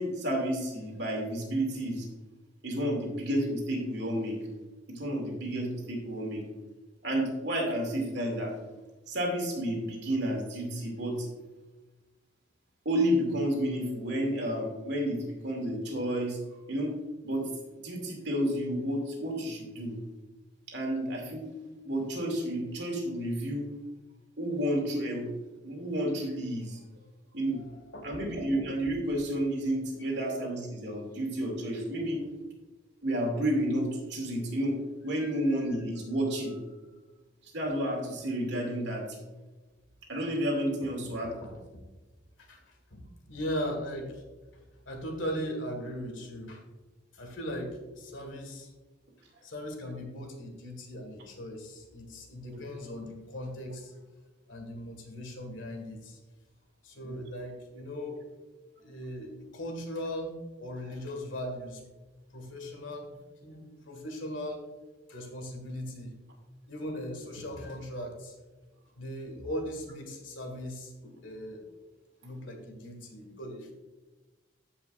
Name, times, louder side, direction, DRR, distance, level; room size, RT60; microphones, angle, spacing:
voice 1, 0.0-2.1 2.6-4.4 4.9-6.4 7.0-8.5 9.1-11.3 12.8-16.4 16.7-16.9 17.2-17.5 17.8-20.0 20.7-21.5 21.9-23.7 24.4-25.3 25.6-26.8 27.3-27.6 28.0-32.2 33.0-34.8 35.0-36.5 37.5-39.2 40.1-41.3 52.5-52.6 57.0-57.2, right 1 dB, 60° right, 0 dB, 2.5 m, -31 dB
voice 2, 27.5-28.2 35.2-35.3 35.7-35.8 41.0-41.6 42.4-44.2 44.9-46.6 47.1-48.7 49.4-53.9 54.5-56.2 56.8-58.2 58.8-60.3 60.6-61.8 62.3-63.2 63.4-64.6 65.1-66.1 66.7-68.4 69.0-71.7 72.2-73.7, equal, 80° left, 4 dB, 2.0 m, -39 dB
14.5 x 5.7 x 2.6 m, 1.2 s
head